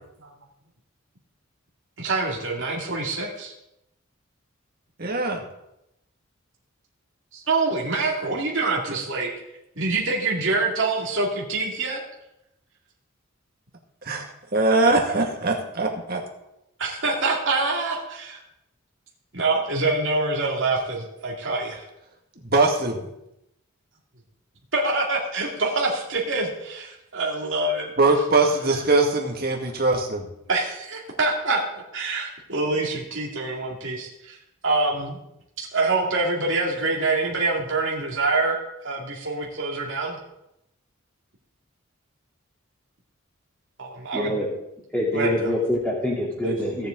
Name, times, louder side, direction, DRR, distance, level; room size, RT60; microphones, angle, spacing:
voice 1, 2.0-3.5 7.3-9.3 9.8-12.0 16.8-18.4 19.3-21.8 24.7-27.9 30.5-31.6 31.9-34.4 34.6-35.2 35.6-38.6 38.8-40.2 43.8-44.3 45.1-45.5 46.4-46.6, right 3 dB, 65° right, -3 dB, 2.3 m, -25 dB
voice 2, 5.0-5.4 14.1-14.2 14.5-16.2 22.4-23.1 28.0-30.3, right 3 dB, 45° right, 1 dB, 2.0 m, -21 dB
voice 3, 44.1-44.5 44.9-46.9, left 1 dB, 5° left, -5 dB, 3.2 m, -25 dB
17.0 x 7.7 x 3.8 m, 0.84 s
head